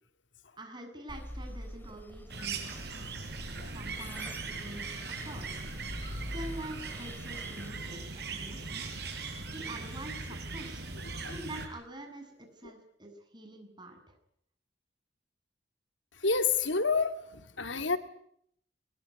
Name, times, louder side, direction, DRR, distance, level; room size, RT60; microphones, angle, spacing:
voice 1, 0.6-3.1 3.7-4.8 5.2-5.7 6.3-9.0 9.5-10.8 11.2-14.0, right 1 dB, 25° right, 5 dB, 7.9 m, -45 dB
sound 1, 1.1-7.7, equal, 10° left, 2.9 m, -45 dB
sound 2, 2.3-11.7, right 4 dB, 55° right, 7.1 m, -40 dB
voice 2, 11.0-11.3 12.6-12.7 16.1-18.0, left 4 dB, 85° left, 9 dB, 2.5 m, -30 dB
25.0 x 22.5 x 9.9 m, 0.70 s
head